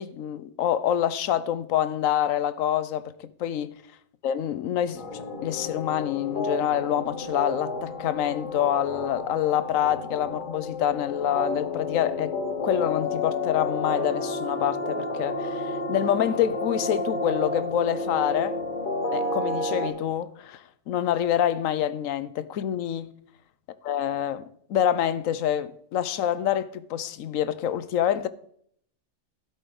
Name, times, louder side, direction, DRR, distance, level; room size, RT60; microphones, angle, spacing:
voice 1, 0.0-3.7 4.2-12.4 12.6-18.6 19.1-23.1 23.8-28.3, left 10 dB, 85° left, 1.1 m, -26 dB
sound 1, 5.0-19.9, left 2 dB, 40° left, 1.4 m, -31 dB
11.5 x 8.0 x 3.9 m
omnidirectional pair, 1.4 m